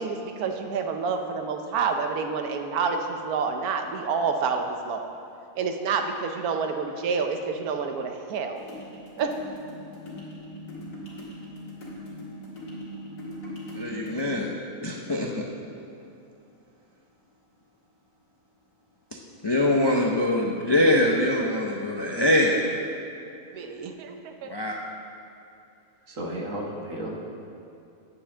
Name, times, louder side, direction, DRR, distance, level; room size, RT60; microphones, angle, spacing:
voice 1, 0.0-5.1 5.6-8.6 9.2-9.3 23.5-24.5, right 5 dB, 80° right, 5 dB, 1.2 m, -28 dB
sound 1, 8.6-14.2, equal, 65° left, 2.2 m, -40 dB
voice 2, 13.7-14.5 14.8-15.4 19.4-22.6 24.4-24.7, left 1 dB, 40° left, -1 dB, 0.3 m, -23 dB
voice 3, 26.0-27.1, right 1 dB, 60° right, -1 dB, 1.7 m, -33 dB
9.3 x 4.9 x 7.1 m, 2.6 s
omnidirectional pair, 1.6 m